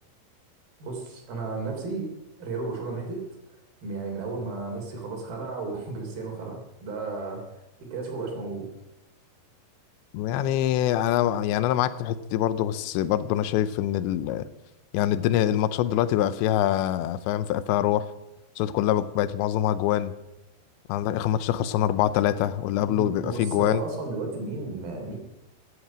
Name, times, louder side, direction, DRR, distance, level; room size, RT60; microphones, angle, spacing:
voice 1, 0.8-2.1 2.4-3.2 3.8-8.7 22.8-25.2, right 3 dB, 55° right, 2 dB, 4.8 m, -34 dB
voice 2, 10.1-14.5 14.9-18.1 18.6-20.1 20.9-23.8, left 12 dB, 85° left, 14 dB, 3.0 m, -24 dB
16.5 x 11.5 x 6.2 m, 0.94 s
omnidirectional pair, 5.2 m